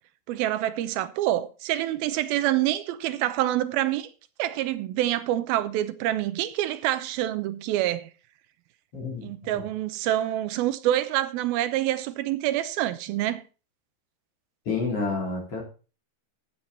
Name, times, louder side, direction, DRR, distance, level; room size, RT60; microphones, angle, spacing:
voice 1, 0.3-4.1 4.4-8.1 9.2-13.4, right 13 dB, 75° right, 2.4 m, -26 dB
voice 2, 8.9-9.6 14.7-15.6, left 4 dB, 35° left, 3.9 m, -30 dB
13.0 x 7.7 x 4.1 m
omnidirectional pair, 4.8 m